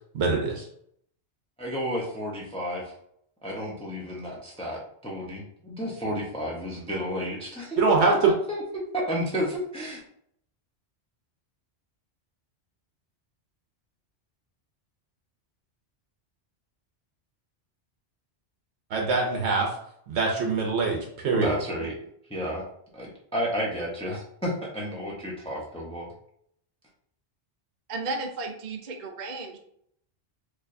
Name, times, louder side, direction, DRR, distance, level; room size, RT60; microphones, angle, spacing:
voice 1, 0.1-0.7 7.8-8.3 18.9-19.8 20.1-21.5, right 4 dB, 75° right, 1 dB, 0.9 m, -24 dB
voice 2, 1.6-2.8 3.4-10.0 21.3-22.0 22.3-22.6 22.9-26.1, equal, 5° left, -3 dB, 0.6 m, -31 dB
voice 3, 27.9-29.6, right 3 dB, 55° right, 3 dB, 0.6 m, -34 dB
4.5 x 2.5 x 2.5 m, 0.69 s
omnidirectional pair, 1.2 m